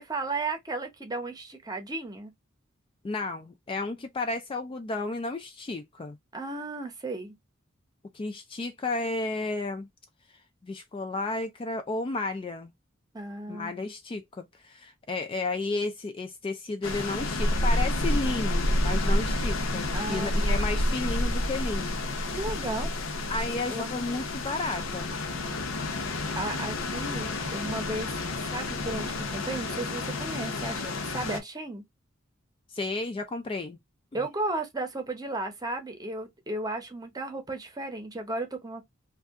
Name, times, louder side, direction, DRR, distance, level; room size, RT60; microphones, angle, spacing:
voice 1, 0.0-2.3 6.3-7.3 13.1-13.7 19.9-20.5 22.3-22.9 23.7-24.2 26.3-28.1 28.4-31.8 34.1-38.8, right 2 dB, 20° right, 0.7 m, -34 dB
voice 2, 3.0-6.2 8.1-9.9 10.6-12.7 13.5-22.0 23.3-25.2 32.7-33.8, left 3 dB, 25° left, 0.3 m, -32 dB
sound 1, 16.8-31.4, left 1 dB, 80° left, 0.7 m, -29 dB
2.6 x 2.4 x 3.4 m
head